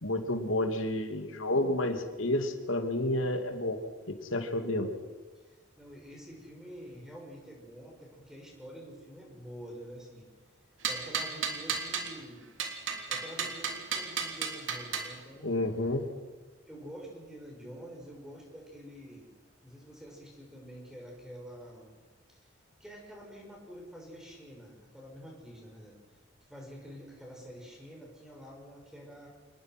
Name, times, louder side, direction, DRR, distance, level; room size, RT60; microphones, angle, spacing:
voice 1, 0.0-3.8 4.1-4.9 15.4-16.1, left 1 dB, 85° left, 6 dB, 2.7 m, -30 dB
voice 2, 5.3-10.3 10.9-12.4 13.1-15.6 16.7-19.3 19.6-21.9 22.3-22.5 22.8-25.9 26.5-29.3, equal, 5° right, -1 dB, 6.4 m, -47 dB
sound 1, 10.8-12.1 12.6-15.1, right 6 dB, 75° right, 3.4 m, -33 dB
27.5 x 20.5 x 6.2 m, 1.3 s
head